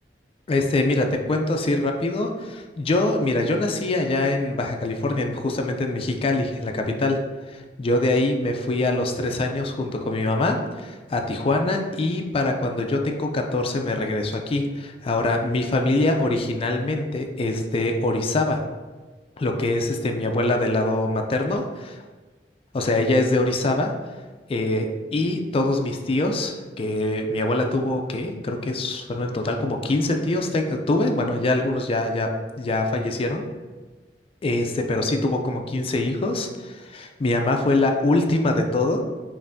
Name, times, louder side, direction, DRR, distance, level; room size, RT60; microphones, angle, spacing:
voice 1, 0.5-7.2 7.5-18.6 19.4-22.0 22.7-23.9 24.5-33.4 34.4-39.0, left 2 dB, 35° left, 3 dB, 0.3 m, -24 dB
5.3 x 2.6 x 2.6 m, 1.3 s
head